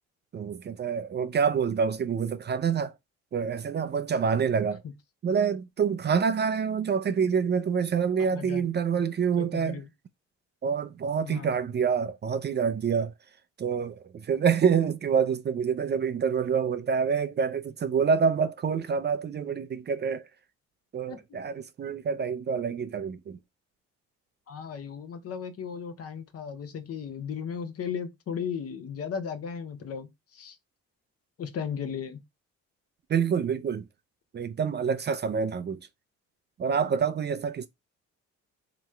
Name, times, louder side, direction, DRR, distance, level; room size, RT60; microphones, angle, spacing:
voice 1, 0.3-2.9 3.3-4.8 5.2-9.8 10.6-13.1 13.6-20.3 20.9-23.4 33.1-33.9 34.3-35.8 36.6-37.7, right 6 dB, 35° right, 0.4 m, -27 dB
voice 2, 8.2-8.7 9.4-9.9 11.2-11.5 21.1-21.2 24.5-30.6 31.4-32.2, left 7 dB, 50° left, 0.8 m, -36 dB
3.6 x 3.0 x 3.1 m
cardioid pair, 90°, 30 cm